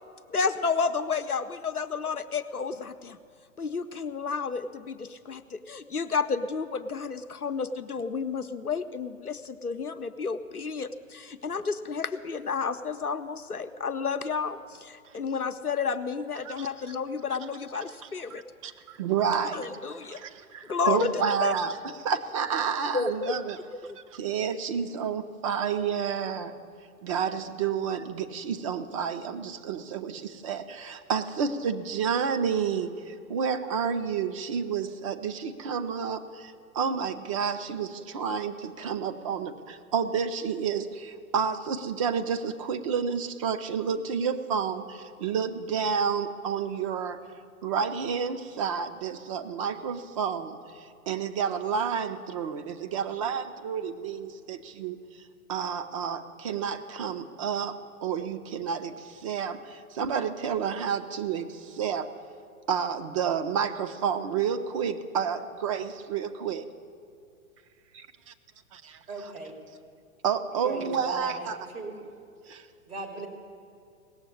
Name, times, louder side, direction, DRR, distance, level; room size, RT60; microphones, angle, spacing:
voice 1, 0.3-3.2 3.6-18.4 19.5-20.2 20.7-21.5 22.9-23.4 23.7-23.8, left 5 dB, 90° left, 8 dB, 0.7 m, -31 dB
voice 2, 18.6-19.7 20.1-23.6 24.0-26.5 27.0-47.2 47.6-55.2 55.5-62.1 62.7-66.6 68.7-69.0 70.2-71.6 72.5-72.7, right 7 dB, 25° right, 9 dB, 0.5 m, -30 dB
voice 3, 69.1-69.6 70.6-72.0 72.9-73.3, right 3 dB, 80° right, 1 dB, 3.0 m, -37 dB
17.5 x 7.5 x 9.7 m, 2.5 s
figure-of-eight pair, 110°, 43 cm